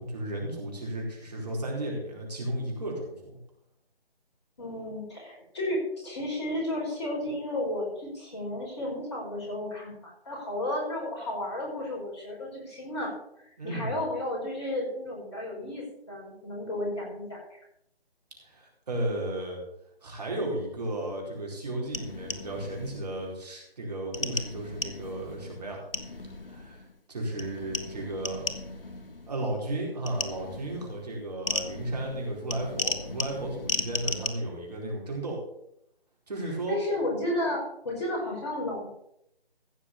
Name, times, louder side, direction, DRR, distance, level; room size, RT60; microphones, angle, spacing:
voice 1, 0.0-3.4 13.6-14.0 18.4-19.6 20.0-25.8 26.5-26.8 27.1-28.5 29.3-35.4 36.3-36.8, right 1 dB, 40° right, -1 dB, 4.5 m, -34 dB
voice 2, 4.6-13.1 13.4-17.4 36.4-38.9, left 1 dB, 25° left, -3 dB, 5.0 m, -33 dB
sound 1, 21.9-23.4 24.1-27.0 27.4-29.6 30.1-34.3, left 2 dB, 65° left, 1.6 m, -36 dB
15.5 x 6.0 x 6.8 m, 0.77 s
figure-of-eight pair, 155°, 30 cm